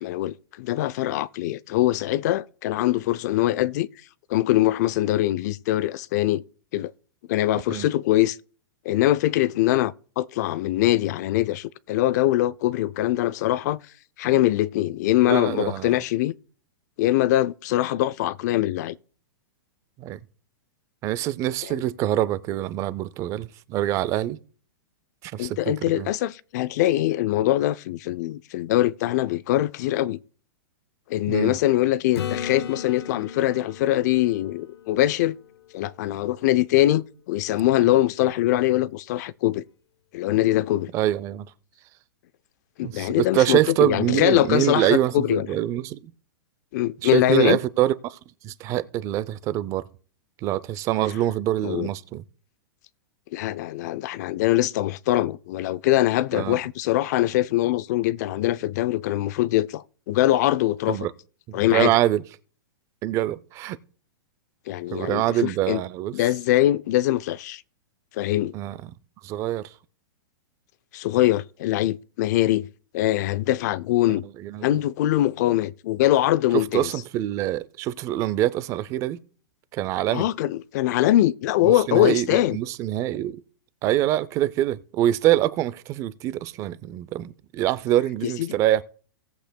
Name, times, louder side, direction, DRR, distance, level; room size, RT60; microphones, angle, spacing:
voice 1, 0.0-3.9 4.3-6.4 6.7-6.9 7.3-8.4 8.9-13.8 14.2-16.3 17.0-18.9 21.7-21.8 25.4-30.2 31.1-35.4 35.7-39.6 40.1-40.9 42.8-45.5 46.7-47.6 51.6-51.9 53.3-61.1 61.5-62.0 64.7-65.8 66.1-67.6 68.1-68.5 70.9-72.7 72.9-74.2 74.6-76.9 80.1-82.6 88.2-88.5, left 14 dB, 45° left, 0.4 m, -23 dB
voice 2, 15.3-15.9 20.0-20.2 21.0-24.4 25.2-26.1 31.3-31.5 40.9-41.5 42.8-46.0 47.0-48.2 48.4-49.8 50.4-52.2 56.3-56.6 60.9-61.1 61.5-62.2 63.0-63.8 64.9-66.2 68.5-68.9 69.2-69.7 74.4-74.7 76.5-79.2 79.7-80.3 81.6-83.4 83.8-88.8, right 13 dB, 25° right, 0.4 m, -25 dB
Acoustic guitar / Strum, 32.1-35.9 40.8-40.9, left 8 dB, 80° left, 0.7 m, -36 dB
18.0 x 7.9 x 2.2 m
hypercardioid pair, 150°, 13 cm